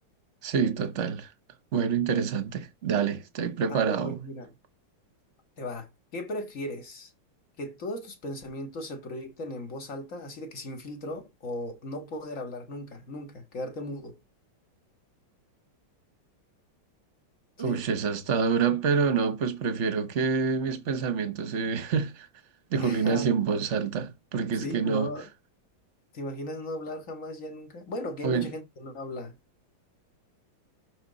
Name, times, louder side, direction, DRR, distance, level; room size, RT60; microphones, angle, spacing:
voice 1, 0.4-1.3 1.7-4.2 17.6-22.3 22.7-25.1 28.2-28.5, right 6 dB, 40° right, 1.2 m, -27 dB
voice 2, 3.7-4.5 5.6-7.1 7.6-14.2 17.6-17.8 22.8-23.3 24.6-25.3 26.1-29.3, left 1 dB, 40° left, 2.0 m, -37 dB
12.0 x 4.5 x 4.0 m
omnidirectional pair, 2.3 m